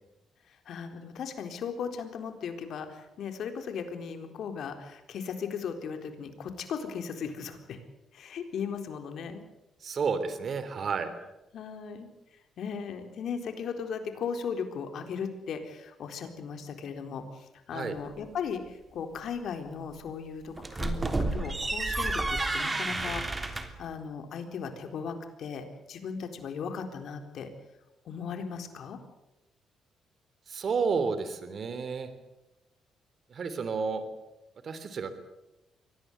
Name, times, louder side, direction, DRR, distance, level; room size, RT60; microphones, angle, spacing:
voice 1, 0.7-7.8 8.1-9.4 11.5-12.1 12.6-27.5 28.1-29.0, left 6 dB, 70° left, 6 dB, 3.9 m, -37 dB
voice 2, 9.8-11.1 17.7-18.0 30.5-32.1 33.3-34.0 34.6-35.3, right 5 dB, 50° right, 11 dB, 3.4 m, -31 dB
sound 1, 20.6-23.8, right 2 dB, 20° right, 3.3 m, -30 dB
24.0 x 18.0 x 8.1 m, 0.94 s
cardioid pair, 90°, 0 cm